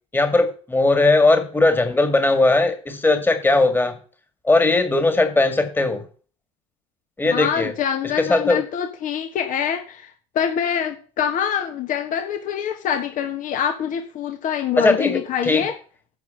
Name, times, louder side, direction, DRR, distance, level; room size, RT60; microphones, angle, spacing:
voice 1, 0.1-3.9 4.4-6.0 7.2-7.7 8.2-8.6 14.8-15.7, left 2 dB, 10° left, 7 dB, 2.0 m, -18 dB
voice 2, 7.3-15.7, left 8 dB, 50° left, 6 dB, 1.4 m, -25 dB
8.7 x 5.8 x 7.6 m, 0.39 s
hypercardioid pair, 70°, 17 cm